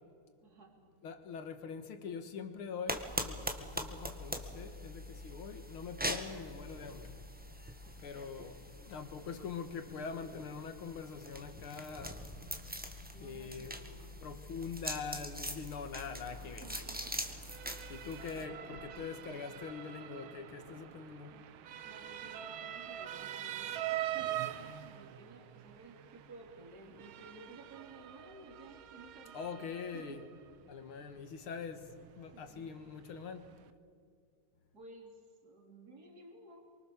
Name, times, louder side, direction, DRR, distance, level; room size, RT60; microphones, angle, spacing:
voice 1, 0.4-0.8 7.7-8.6 13.1-14.2 16.4-17.1 18.3-18.9 21.3-21.4 21.8-30.2 32.3-32.8 34.7-36.6, right 2 dB, 45° right, 3.9 m, -55 dB
voice 2, 1.0-7.2 8.0-12.2 12.9-13.8 14.2-16.8 17.9-21.4 29.3-30.2 30.7-33.5, left 5 dB, 80° left, 2.4 m, -44 dB
sound 1, 2.9-18.5, equal, 5° right, 1.5 m, -43 dB
sound 2, 10.9-21.3, equal, 15° left, 4.0 m, -63 dB
Motor vehicle (road) / Siren, 16.3-33.7, right 12 dB, 80° right, 1.7 m, -45 dB
28.0 x 24.0 x 7.1 m
omnidirectional pair, 2.3 m